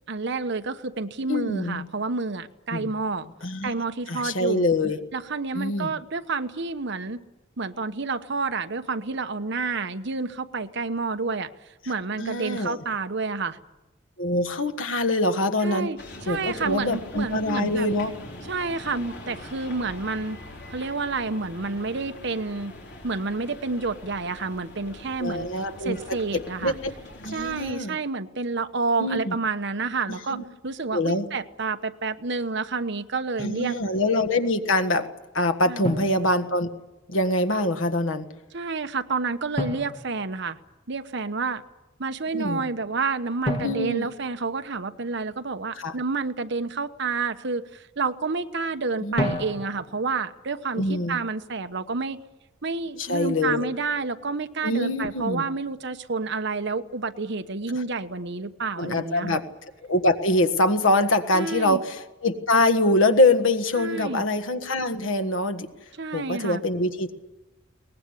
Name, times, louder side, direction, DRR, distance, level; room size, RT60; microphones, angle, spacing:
voice 1, 0.1-3.3 3.6-4.7 5.1-7.2 7.6-11.5 11.9-13.6 15.6-17.9 18.5-20.4 20.7-22.7 23.0-25.5 25.8-26.7 27.3-33.7 35.7-35.9 38.5-40.6 40.9-41.6 42.0-52.2 52.6-59.4 61.3-61.8 63.8-64.2 66.0-66.6, right 4 dB, 60° right, 9 dB, 1.0 m, -29 dB
voice 2, 1.3-1.9 2.7-2.9 3.4-3.7 4.1-5.0 5.5-5.9 12.2-12.8 14.2-15.9 16.3-18.1 25.2-26.9 27.2-28.0 29.0-29.3 30.3-30.4 30.9-31.2 33.4-35.1 35.3-36.7 37.1-38.3 42.3-42.6 43.6-44.1 45.8-45.9 49.0-49.4 50.8-51.2 53.0-53.7 54.6-55.4 58.8-59.4 59.8-62.0 62.2-65.7 66.1-67.1, left 1 dB, 75° left, 7 dB, 1.6 m, -24 dB
sound 1, 16.0-27.7, left 1 dB, 55° left, 4.2 m, -43 dB
Drum, 33.4-33.7 35.8-37.0 39.6-41.0 43.4-45.2 49.2-50.1, equal, 30° left, 3.1 m, -33 dB
22.5 x 19.5 x 9.8 m, 1.1 s
head